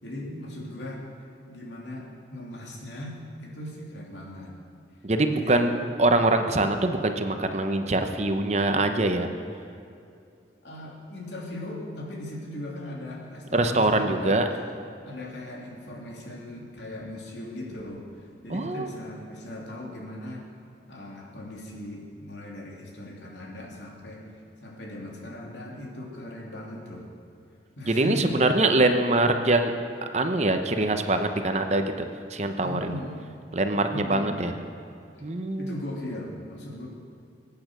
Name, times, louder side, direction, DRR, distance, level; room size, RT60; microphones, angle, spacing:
voice 1, 0.0-1.0 1.5-4.5 5.3-5.6 10.6-14.4 15.0-20.4 20.9-24.2 24.6-27.1 27.8-28.4 32.6-33.3 33.9-34.4 35.6-36.9, left 1 dB, 80° left, -2 dB, 2.9 m, -38 dB
voice 2, 5.0-9.3 13.5-14.4 18.5-18.9 27.9-29.7 30.1-31.9 32.3-32.8 33.5-34.5 35.2-35.7, right 2 dB, 40° right, 6 dB, 0.9 m, -23 dB
23.0 x 8.7 x 6.2 m, 2.4 s
head